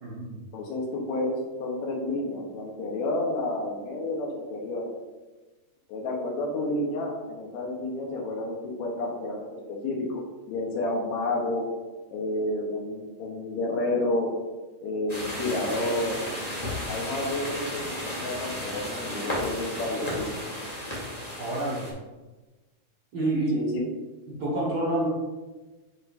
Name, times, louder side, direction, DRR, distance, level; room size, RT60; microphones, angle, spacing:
voice 1, 0.0-0.4 21.4-21.9 23.1-23.6 24.4-25.1, right 1 dB, 60° right, -6 dB, 1.0 m, -27 dB
voice 2, 0.5-4.9 5.9-10.2 10.5-11.7 12.1-14.3 14.8-16.2 16.9-20.3 23.5-23.9, left 2 dB, 70° left, 1 dB, 2.1 m, -30 dB
sound 1, 15.1-21.9, left 1 dB, 35° left, 0.6 m, -34 dB
7.6 x 5.1 x 2.6 m, 1.2 s
omnidirectional pair, 3.7 m